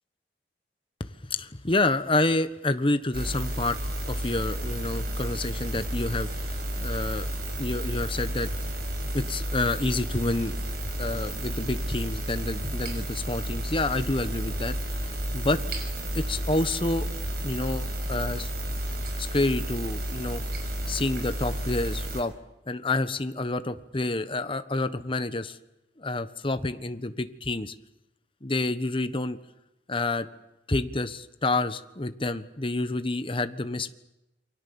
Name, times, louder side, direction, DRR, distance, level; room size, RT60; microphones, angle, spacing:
voice 1, 1.0-3.8 4.1-8.5 9.1-10.6 11.0-15.6 16.1-17.1 17.4-18.5 19.2-20.4 20.9-22.3 22.7-25.6 26.0-27.7 28.4-29.4 29.9-30.3 30.7-33.9, left 2 dB, 30° left, 10 dB, 1.3 m, -28 dB
sound 1, 3.1-22.2, equal, 60° right, 6.1 m, -32 dB
28.5 x 24.0 x 7.2 m, 0.94 s
head